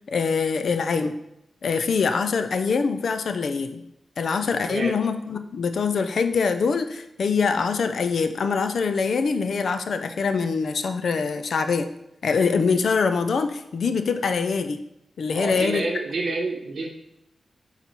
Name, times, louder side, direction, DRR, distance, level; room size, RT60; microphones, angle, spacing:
voice 1, 0.1-1.1 1.6-3.8 4.2-11.9 12.2-14.8 15.2-15.9, left 5 dB, 60° left, 8 dB, 0.4 m, -24 dB
voice 2, 15.3-16.9, right 2 dB, 55° right, 1 dB, 1.0 m, -28 dB
6.1 x 4.0 x 4.2 m, 0.82 s
wide cardioid pair, 170°, 0 cm